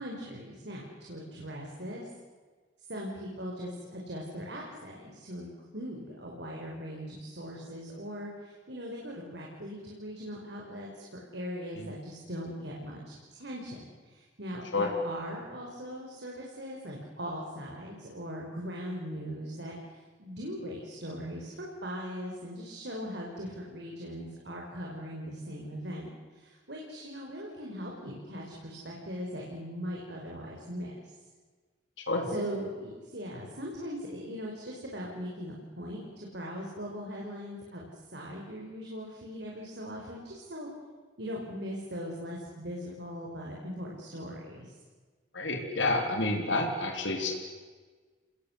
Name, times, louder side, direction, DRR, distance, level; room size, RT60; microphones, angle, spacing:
voice 1, 0.0-2.1 2.9-11.0 11.3-13.8 14.0-31.1 32.3-40.7 41.2-44.7, equal, 65° right, -2 dB, 5.4 m, -40 dB
voice 2, 45.3-47.3, left 2 dB, 80° left, 3 dB, 3.8 m, -29 dB
29.5 x 20.5 x 8.4 m, 1.4 s
head